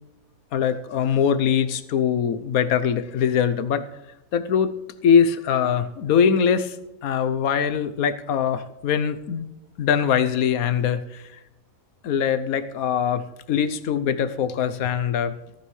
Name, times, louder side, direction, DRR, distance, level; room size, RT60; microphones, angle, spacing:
voice 1, 0.5-3.8 4.3-4.7 5.0-6.8 7.0-9.5 9.8-11.3 12.0-13.2 13.5-15.3, left 7 dB, 85° left, 12 dB, 1.2 m, -22 dB
14.5 x 14.0 x 3.2 m, 0.98 s
omnidirectional pair, 1.5 m